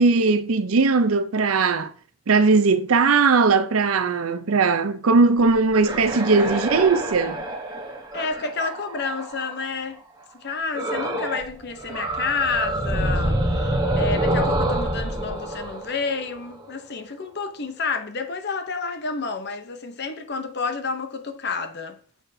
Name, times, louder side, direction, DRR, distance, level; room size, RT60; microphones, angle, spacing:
voice 1, 0.0-1.9 2.3-7.4, right 4 dB, 75° right, 0.6 m, -19 dB
sound 1, 5.5-9.6 10.7-11.5 11.8-16.7, right 1 dB, 20° right, 1.1 m, -26 dB
voice 2, 8.1-10.0 10.4-22.0, left 4 dB, 50° left, 0.8 m, -29 dB
7.1 x 6.1 x 2.7 m
head